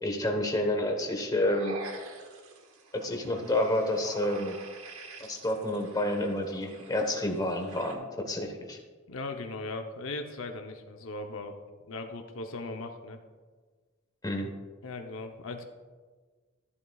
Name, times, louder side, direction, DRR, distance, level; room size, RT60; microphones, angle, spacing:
voice 1, 0.0-1.8 2.9-4.5 5.3-8.8 14.2-14.5, left 1 dB, 20° left, 3 dB, 1.1 m, -29 dB
sound 1, 1.3-7.9, right 3 dB, 85° right, 1.2 m, -47 dB
voice 2, 9.1-11.5 11.9-13.2 14.8-15.6, left 2 dB, 65° left, 4 dB, 0.7 m, -38 dB
12.5 x 11.0 x 2.3 m, 1.4 s
head